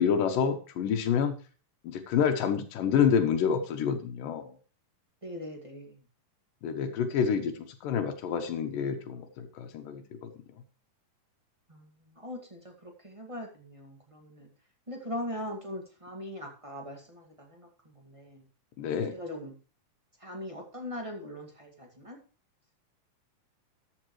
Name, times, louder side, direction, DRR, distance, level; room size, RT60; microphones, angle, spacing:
voice 1, 0.0-1.4 1.8-4.5 6.6-10.3 18.8-19.1, left 7 dB, 90° left, 6 dB, 2.7 m, -28 dB
voice 2, 5.2-6.0 11.7-14.5 14.9-18.4 19.1-19.5 20.2-22.2, left 1 dB, 15° right, 1 dB, 1.4 m, -41 dB
13.5 x 9.8 x 3.2 m, 0.37 s
omnidirectional pair, 3.7 m